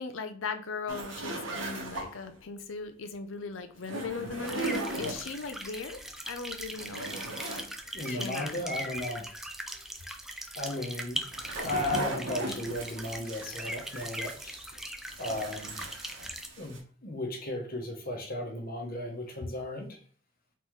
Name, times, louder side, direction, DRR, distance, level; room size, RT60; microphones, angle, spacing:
voice 1, 0.0-7.6 8.1-8.6, left 4 dB, 85° left, 8 dB, 0.6 m, -38 dB
sound 1, 0.9-2.4 3.8-5.5 6.1-6.2 6.5-7.7 8.0-8.1 10.9-14.7 15.0-16.8, right 2 dB, 90° right, 1.2 m, -38 dB
sound 2, 4.4-16.5, right 1 dB, ahead, 0.4 m, -40 dB
voice 2, 7.9-9.3 10.6-11.2 11.6-14.6 15.2-15.9 16.6-19.9, left 1 dB, 50° left, 3 dB, 1.0 m, -35 dB
3.8 x 3.6 x 3.2 m, 0.43 s
head